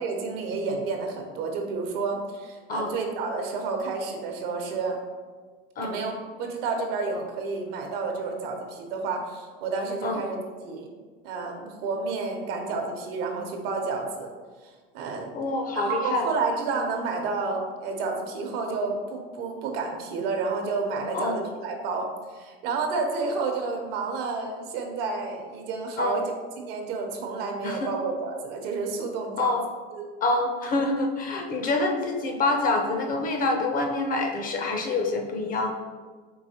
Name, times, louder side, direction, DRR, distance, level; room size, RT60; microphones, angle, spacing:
voice 1, 0.0-5.0 5.8-10.4 10.6-10.9 11.2-14.3 14.9-15.3 15.7-22.1 22.3-29.5 29.9-30.0, right 4 dB, 70° right, 3 dB, 0.8 m, -30 dB
voice 2, 15.3-16.3 21.1-21.4 26.0-26.2 27.6-27.9 29.4-29.6 30.2-35.7, left 2 dB, 30° left, 3 dB, 0.5 m, -26 dB
4.7 x 2.7 x 2.7 m, 1.4 s
hypercardioid pair, 100°, 30 cm